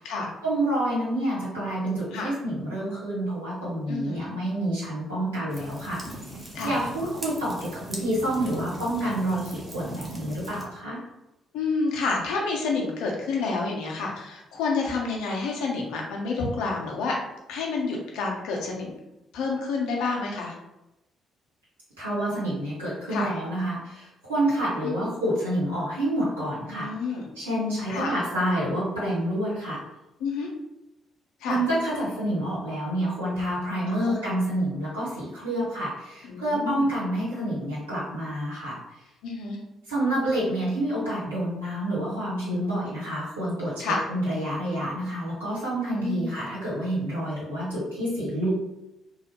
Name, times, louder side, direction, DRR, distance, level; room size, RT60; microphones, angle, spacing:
voice 1, 0.4-6.0 6.6-11.0 22.0-26.9 27.3-29.8 31.5-38.8 39.9-48.5, right 1 dB, 85° right, -9 dB, 1.1 m, -28 dB
voice 2, 3.9-4.3 6.5-6.8 11.5-17.1 17.5-18.9 19.3-20.5 23.1-23.3 24.8-24.9 26.7-27.3 27.9-28.1 30.2-30.5 31.4-31.6 34.0-34.2 36.2-36.8 39.2-39.6 43.8-44.0 45.9-46.3, left 4 dB, 65° left, -1 dB, 0.6 m, -29 dB
sound 1, 5.5-10.7, right 1 dB, 25° right, 0.8 m, -39 dB
3.0 x 2.0 x 2.9 m, 0.94 s
figure-of-eight pair, 45°, 0 cm